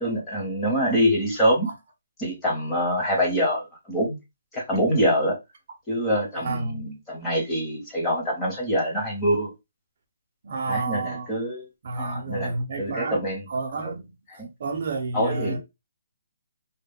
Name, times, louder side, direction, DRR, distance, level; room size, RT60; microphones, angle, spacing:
voice 1, 0.0-1.7 2.2-4.2 4.5-5.3 5.9-9.5 10.7-11.6 12.0-12.5 12.8-13.4 13.8-13.9 14.3-14.5 15.1-15.6, equal, 10° left, 0.8 m, -25 dB
voice 2, 6.4-6.8 10.4-11.3 11.8-13.2 13.5-14.1 14.6-15.6, right 3 dB, 50° right, 0.5 m, -30 dB
2.2 x 2.0 x 3.5 m
hypercardioid pair, 170°, 0 cm